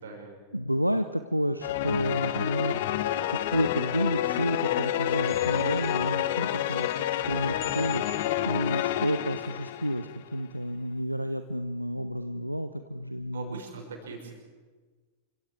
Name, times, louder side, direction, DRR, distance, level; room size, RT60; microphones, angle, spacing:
voice 1, 0.0-0.4 13.3-14.3, right 4 dB, 65° right, 1 dB, 6.4 m, -40 dB
voice 2, 0.5-6.9 7.3-8.1 8.4-13.6, equal, 90° right, 9 dB, 0.8 m, -30 dB
sound 1, 1.6-10.2, left 12 dB, 55° left, 1.2 m, -29 dB
sound 2, 3.2-8.3, left 6 dB, 25° left, 6.5 m, -49 dB
28.5 x 25.0 x 4.8 m, 1.4 s
figure-of-eight pair, 90°, 0 cm